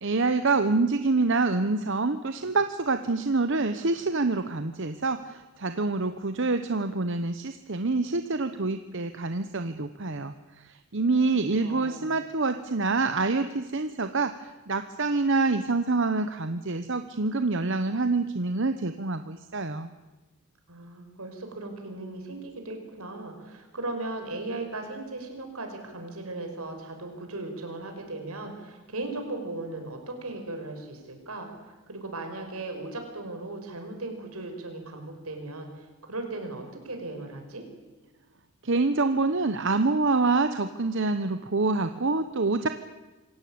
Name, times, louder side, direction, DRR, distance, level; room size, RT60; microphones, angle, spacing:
voice 1, 0.0-19.9 38.6-42.7, right 3 dB, 55° right, 9 dB, 1.0 m, -26 dB
voice 2, 11.6-12.1 20.7-37.6, right 2 dB, 80° right, 5 dB, 5.4 m, -37 dB
26.5 x 16.5 x 8.7 m, 1.2 s
head